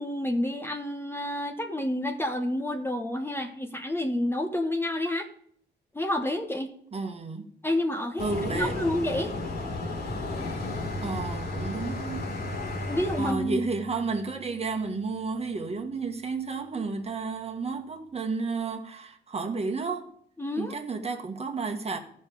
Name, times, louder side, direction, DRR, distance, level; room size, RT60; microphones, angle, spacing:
voice 1, 0.0-5.3 5.9-6.7 7.6-8.2 8.5-9.3 12.9-13.6 20.4-20.7, left 1 dB, 10° left, 0.9 m, -29 dB
voice 2, 6.9-7.5 8.2-8.8 11.0-12.3 13.2-20.1 20.6-22.0, right 4 dB, 30° right, 1.4 m, -32 dB
sound 1, 8.2-13.3, left 2 dB, 55° left, 2.5 m, -34 dB
Bowed string instrument, 10.3-15.6, equal, 80° left, 2.5 m, -40 dB
13.5 x 5.4 x 5.1 m
cardioid pair, 90°, 20 cm